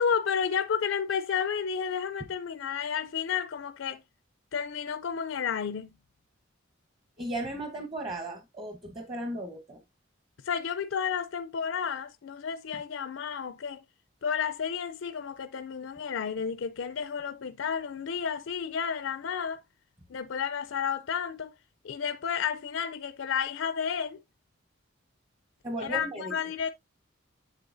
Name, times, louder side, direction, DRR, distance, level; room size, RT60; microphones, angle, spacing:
voice 1, 0.0-4.0 4.5-5.9 10.5-13.8 14.2-19.6 20.1-21.5 21.8-24.2 25.8-26.7, left 7 dB, 70° left, 0.4 m, -31 dB
voice 2, 7.2-9.8 25.6-26.3, right 1 dB, 25° right, 1.0 m, -36 dB
7.7 x 7.7 x 2.6 m
head